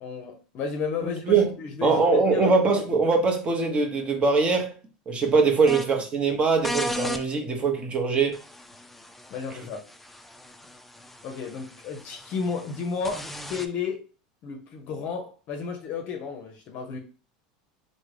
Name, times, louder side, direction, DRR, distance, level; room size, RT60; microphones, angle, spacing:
voice 1, 0.0-2.6 9.3-9.8 11.2-14.0 14.4-17.0, left 5 dB, 50° left, 0.6 m, -33 dB
voice 2, 1.0-1.5 1.8-4.7 5.1-8.4, right 4 dB, 30° right, 0.8 m, -22 dB
sound 1, 5.7-5.8 6.6-7.2 8.3-13.7, left 1 dB, 5° left, 0.4 m, -36 dB
3.4 x 2.1 x 3.2 m
hypercardioid pair, 105°, 4 cm